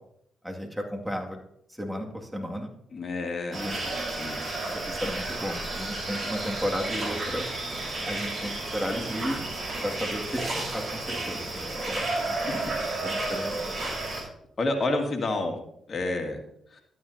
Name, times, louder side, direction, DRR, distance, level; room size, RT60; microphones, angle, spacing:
voice 1, 0.4-1.4 1.7-2.7 3.5-3.8 4.7-7.5 8.0-9.5 9.8-12.4 13.0-14.0, equal, 5° right, 1 dB, 2.3 m, -34 dB
voice 2, 2.9-3.6 4.2-4.4 14.6-15.6 15.9-16.4 16.7-16.8, left 2 dB, 50° left, 3 dB, 2.1 m, -28 dB
sound 1, 3.5-14.2, right 2 dB, 55° right, 4.4 m, -32 dB
12.5 x 9.4 x 2.8 m, 0.73 s
hypercardioid pair, 50°, 0 cm